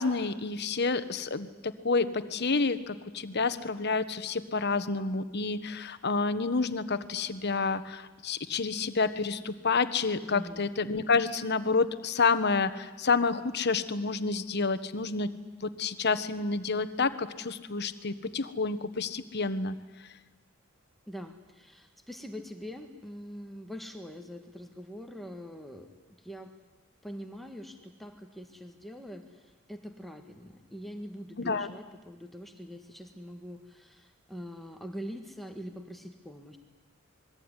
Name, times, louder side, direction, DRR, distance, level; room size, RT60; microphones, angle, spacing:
voice 1, 0.0-15.3 15.6-19.7 31.4-31.7, left 4 dB, 55° left, 11 dB, 1.4 m, -29 dB
voice 2, 10.3-10.7 21.1-25.9 26.2-26.5 27.0-36.6, equal, ahead, 4 dB, 1.7 m, -43 dB
27.5 x 21.5 x 9.9 m, 1.2 s
head